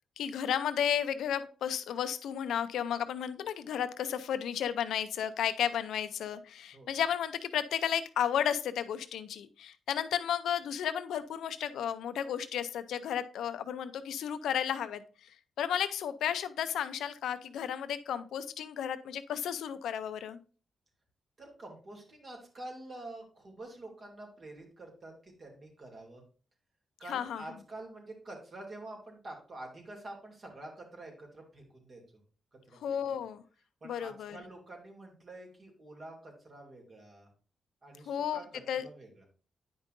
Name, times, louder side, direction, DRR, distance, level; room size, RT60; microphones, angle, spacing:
voice 1, 0.2-15.0 15.6-20.4 27.1-27.4 32.8-33.4 33.8-34.4 38.1-38.4 38.7-38.8, left 9 dB, 85° left, 12 dB, 0.6 m, -33 dB
voice 2, 21.4-26.2 27.0-32.0 32.7-32.8 33.8-37.3 37.8-39.3, right 2 dB, 50° right, 1 dB, 2.7 m, -47 dB
9.5 x 5.3 x 2.6 m, 0.39 s
cardioid pair, 60°, 0 cm